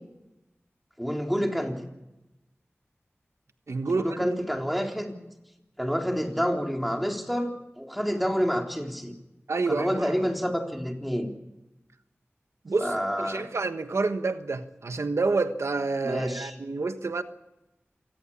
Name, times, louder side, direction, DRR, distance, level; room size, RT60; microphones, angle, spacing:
voice 1, 1.0-1.9 4.0-5.1 5.8-9.1 9.7-11.3 12.8-13.4 16.0-16.6, equal, ahead, 3.8 m, -28 dB
voice 2, 3.7-4.2 9.5-9.9 12.6-12.9 13.2-17.2, right 3 dB, 85° right, 1.3 m, -28 dB
27.5 x 19.0 x 7.2 m
wide cardioid pair, 55°, 5 cm